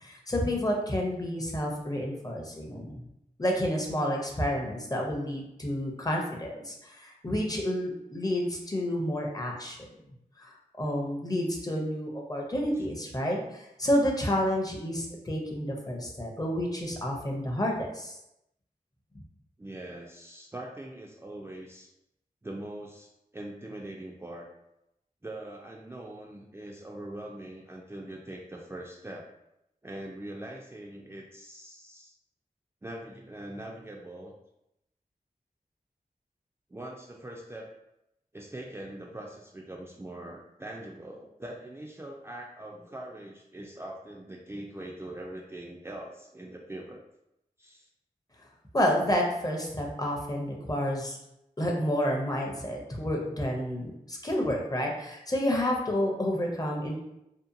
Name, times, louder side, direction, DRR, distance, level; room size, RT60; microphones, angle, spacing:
voice 1, 0.0-3.0 3.4-9.8 10.4-10.5 10.8-18.2 19.1-19.2 48.7-51.2 51.6-57.0, equal, 25° left, -1 dB, 0.6 m, -30 dB
voice 2, 19.6-21.9 22.4-24.5 25.2-29.2 29.8-32.1 32.8-34.3 36.7-37.7 38.3-47.0 47.6-47.9, right 1 dB, 15° right, -2 dB, 0.3 m, -42 dB
2.7 x 2.1 x 2.5 m, 0.84 s
wide cardioid pair, 55°, 15 cm